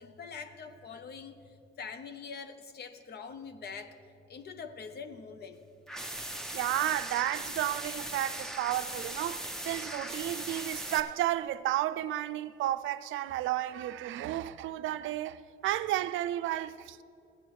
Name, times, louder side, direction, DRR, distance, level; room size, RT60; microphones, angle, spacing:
voice 1, 0.0-1.4 1.8-4.0 4.3-5.6, left 5 dB, 55° left, 0.8 m, -44 dB
sound 1, 5.9-11.0, right 1 dB, ahead, 0.9 m, -39 dB
voice 2, 6.5-17.0, right 13 dB, 80° right, 0.4 m, -32 dB
16.5 x 8.9 x 3.2 m
cardioid pair, 90°, 20 cm